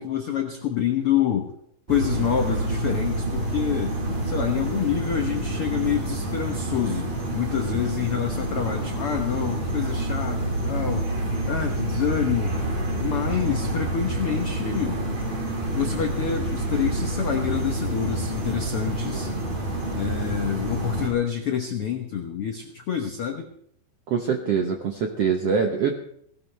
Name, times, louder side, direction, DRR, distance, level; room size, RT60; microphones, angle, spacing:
voice 1, 0.0-1.5 1.9-3.9 4.2-11.1 11.5-12.6 13.0-15.0 15.7-19.3 19.9-23.5, left 9 dB, 85° left, 3 dB, 1.2 m, -27 dB
sound 1, 1.9-21.1, right 1 dB, 55° right, 5.8 m, -28 dB
voice 2, 24.1-26.0, right 6 dB, 75° right, 3 dB, 1.4 m, -24 dB
18.0 x 17.5 x 3.3 m, 0.67 s
omnidirectional pair, 4.4 m